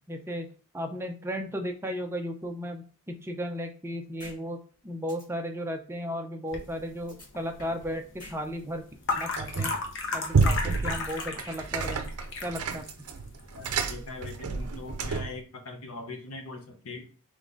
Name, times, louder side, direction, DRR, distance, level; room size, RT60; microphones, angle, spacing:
voice 1, 0.1-0.5 0.7-8.0 8.3-8.8 9.2-9.7 10.1-12.1 12.4-12.8, equal, 10° right, 4 dB, 0.5 m, -35 dB
sound 1, 4.2-4.4 4.7-4.8 5.1-5.2 7.1-7.9 8.2-8.4 8.7-9.3 11.1-11.9, left 1 dB, 35° left, 2.3 m, -48 dB
sound 2, 6.5-15.2, left 3 dB, 55° left, 0.8 m, -36 dB
sound 3, 9.4-9.9 10.3-15.4, right 4 dB, 80° right, 0.5 m, -29 dB
voice 2, 13.6-17.1, left 3 dB, 80° left, 3 dB, 1.0 m, -41 dB
3.7 x 3.1 x 3.8 m, 0.38 s
head